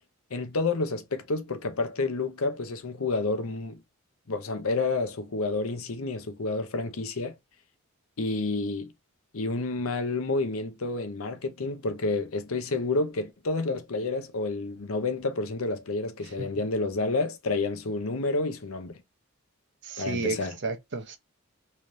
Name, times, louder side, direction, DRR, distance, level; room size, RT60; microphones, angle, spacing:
voice 1, 0.3-3.8 4.3-7.3 8.2-8.9 9.3-19.0 20.0-20.6, left 3 dB, 75° left, 0.8 m, -29 dB
voice 2, 19.8-21.2, right 3 dB, 55° right, 0.8 m, -32 dB
3.3 x 3.3 x 2.7 m
head